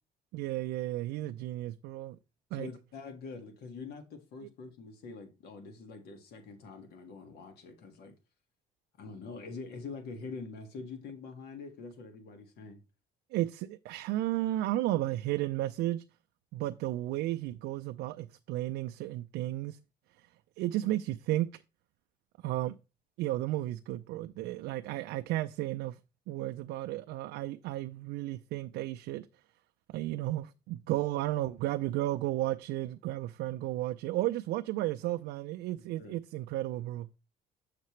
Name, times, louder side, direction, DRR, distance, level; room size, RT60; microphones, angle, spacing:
voice 1, 0.3-2.2 2.5-2.7 13.3-16.0 16.5-19.8 20.6-21.5 22.4-22.8 23.2-26.0 26.3-29.3 29.9-37.1, right 15 dB, 80° right, 0.4 m, -33 dB
voice 2, 2.5-8.1 9.0-12.8 36.0-36.2, left 4 dB, 70° left, 1.8 m, -45 dB
6.6 x 6.6 x 3.1 m
cardioid pair, 110°, 17 cm